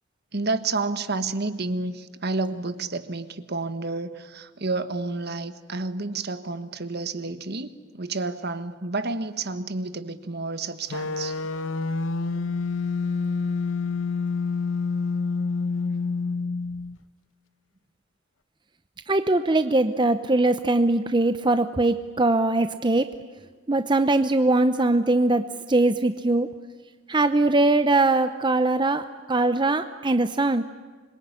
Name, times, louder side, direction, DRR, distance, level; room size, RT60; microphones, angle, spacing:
voice 1, 0.3-11.4, right 3 dB, 55° right, 1.4 m, -30 dB
sound 1, 10.9-17.0, left 4 dB, 80° left, 0.9 m, -27 dB
voice 2, 19.1-23.1 23.7-26.5 27.1-30.6, right 2 dB, 25° right, 0.7 m, -21 dB
26.0 x 22.5 x 9.8 m
head